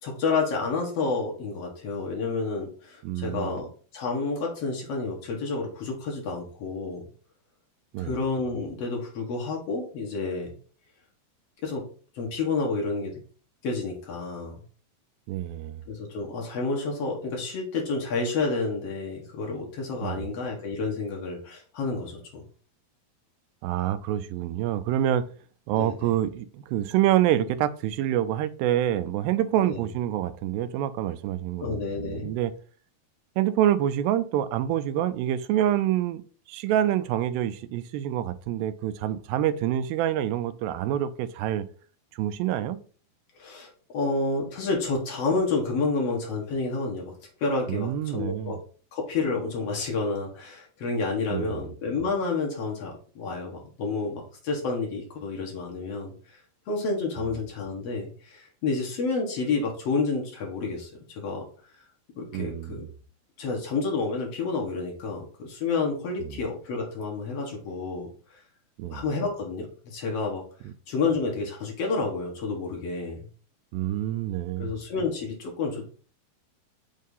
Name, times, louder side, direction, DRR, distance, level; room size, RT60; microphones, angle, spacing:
voice 1, 0.0-3.7 3.9-7.0 8.0-10.5 11.6-11.8 12.1-13.2 13.6-14.6 15.9-22.4 25.8-26.1 29.6-29.9 31.6-32.3 43.4-47.1 47.4-48.6 48.9-56.1 56.7-60.9 61.1-61.4 62.2-62.8 63.4-68.1 68.9-70.4 70.9-73.2 74.6-75.8, left 3 dB, 60° left, 1.8 m, -29 dB
voice 2, 3.0-3.6 7.9-8.2 15.3-15.8 20.0-20.3 23.6-25.2 25.7-32.5 33.4-36.2 36.5-41.7 42.1-42.8 47.7-48.6 51.3-51.7 57.2-57.3 62.3-62.9 66.2-66.4 68.8-69.0 70.6-70.7 73.7-74.7, right 11 dB, 80° right, 2.3 m, -27 dB
6.5 x 2.8 x 5.3 m
omnidirectional pair, 4.2 m